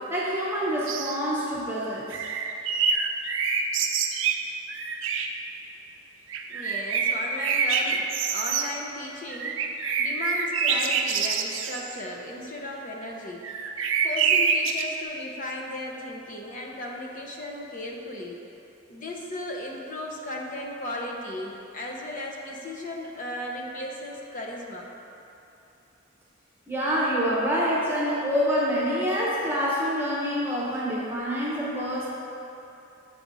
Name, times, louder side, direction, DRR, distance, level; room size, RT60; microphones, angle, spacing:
voice 1, 0.1-2.1 26.7-32.1, equal, 10° right, -6 dB, 0.9 m, -26 dB
sound 1, 0.9-1.2 1.9-5.4 6.3-8.7 9.3-12.0 13.4-14.9, right 5 dB, 75° right, 0.5 m, -26 dB
voice 2, 6.5-9.6 10.0-13.4 14.0-18.4 18.9-24.9, left 1 dB, 40° left, -1 dB, 0.8 m, -35 dB
7.7 x 4.8 x 4.0 m, 2.8 s
head